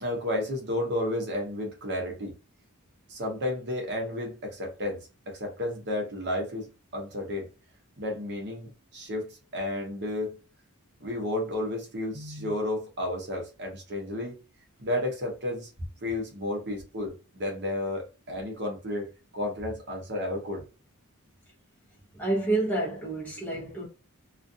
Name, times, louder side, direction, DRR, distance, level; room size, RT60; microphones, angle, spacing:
voice 1, 0.0-2.3 3.1-5.0 5.3-6.7 6.9-7.5 8.0-10.4 11.0-14.4 14.8-15.7 16.0-19.1 19.3-20.6, left 1 dB, 50° right, 0.8 m, -32 dB
voice 2, 22.1-23.9, right 2 dB, 5° left, 0.8 m, -28 dB
2.4 x 2.4 x 2.6 m
head